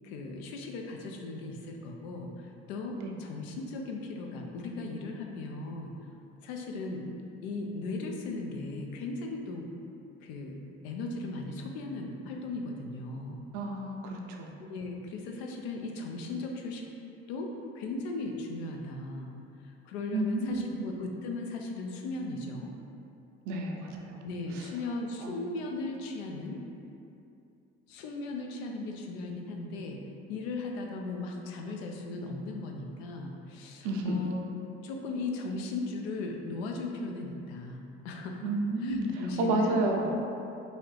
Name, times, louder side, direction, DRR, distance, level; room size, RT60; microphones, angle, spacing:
voice 1, 0.0-6.0 6.4-7.1 7.4-9.7 10.2-10.6 10.8-13.4 14.6-16.8 17.3-19.3 19.6-22.7 24.2-26.6 27.9-30.0 30.3-34.4 34.8-38.5 38.8-39.8, left 3 dB, 80° left, 2 dB, 0.5 m, -37 dB
voice 2, 13.5-14.6 20.1-20.7 23.5-24.2 25.2-25.4 33.8-34.2 38.4-40.1, right 2 dB, 60° right, 1 dB, 0.5 m, -31 dB
2.7 x 2.5 x 3.2 m, 2.7 s
hypercardioid pair, 65°, 32 cm